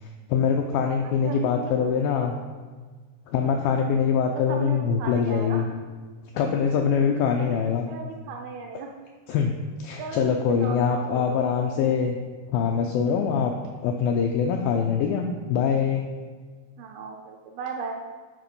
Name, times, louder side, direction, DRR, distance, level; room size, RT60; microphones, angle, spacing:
voice 1, 0.0-2.3 3.3-5.7 6.3-7.9 9.3-9.5 9.8-12.2 12.5-13.5 13.8-16.0, left 6 dB, 85° left, 2 dB, 2.0 m, -24 dB
voice 2, 1.0-2.3 4.4-5.6 7.3-8.9 10.0-11.5 16.8-17.9, right 5 dB, 80° right, 2 dB, 2.2 m, -37 dB
8.0 x 4.2 x 5.3 m, 1.4 s
omnidirectional pair, 4.7 m